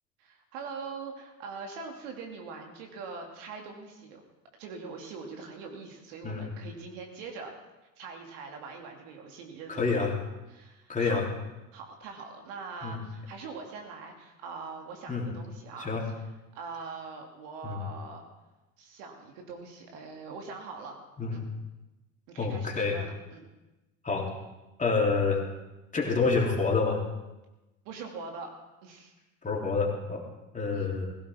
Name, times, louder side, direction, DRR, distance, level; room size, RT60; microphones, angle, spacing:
voice 1, 0.2-4.2 4.6-7.5 8.0-10.1 10.5-11.2 11.7-15.9 16.5-18.2 18.8-21.0 21.3-21.4 22.3-23.5 27.8-28.5 28.8-29.1 30.7-30.9, right 4 dB, 65° right, 2 dB, 2.6 m, -42 dB
voice 2, 9.7-10.1 10.9-11.3 12.8-13.0 15.1-15.3 15.8-16.0 17.6-17.8 21.2-21.4 22.4-23.0 24.0-24.3 24.8-25.4 25.9-27.0 29.4-30.2 30.5-31.0, left 4 dB, 20° left, -1 dB, 3.3 m, -27 dB
17.0 x 16.0 x 3.6 m, 1.0 s
hypercardioid pair, 75°, 40 cm